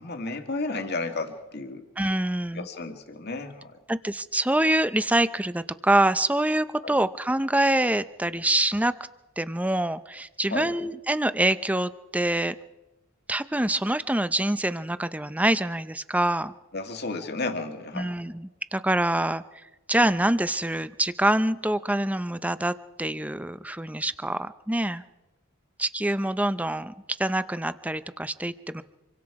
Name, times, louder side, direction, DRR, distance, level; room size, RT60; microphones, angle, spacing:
voice 1, 0.0-1.9 2.5-3.8 6.8-7.0 10.5-10.7 16.7-18.1, left 3 dB, 50° left, 5 dB, 2.0 m, -32 dB
voice 2, 2.0-2.7 3.9-8.9 9.4-12.6 13.3-16.5 17.9-19.4 19.9-25.0 25.8-28.8, right 1 dB, 5° right, 13 dB, 0.6 m, -25 dB
26.5 x 23.0 x 4.8 m, 1.1 s
head